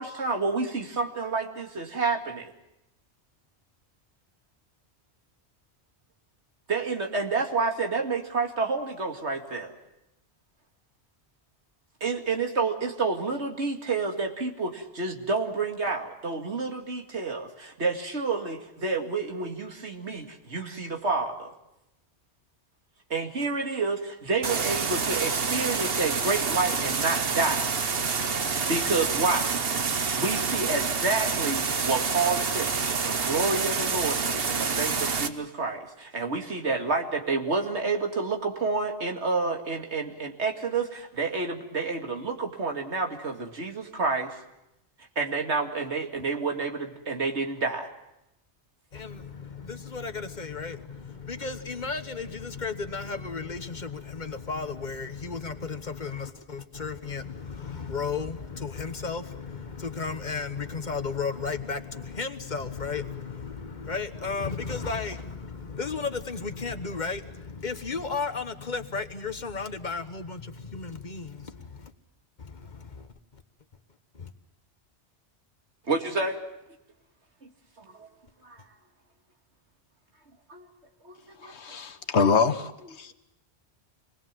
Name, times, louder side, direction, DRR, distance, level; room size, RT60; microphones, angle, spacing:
voice 1, 0.0-2.5 6.7-9.7 12.0-21.5 23.1-27.7 28.5-29.5 30.1-44.4 45.2-47.9 75.9-76.4 77.4-77.5 77.8-78.1 78.4-78.7 80.5-80.7 81.0-81.5, right 4 dB, 90° right, 2.5 m, -29 dB
sound 1, 24.4-35.3, right 5 dB, 60° right, 1.3 m, -27 dB
voice 2, 48.9-71.9 72.4-73.4 74.1-74.3, left 4 dB, 45° left, 1.3 m, -34 dB
voice 3, 81.4-83.1, left 5 dB, 80° left, 1.4 m, -25 dB
26.5 x 20.5 x 7.5 m
omnidirectional pair, 1.1 m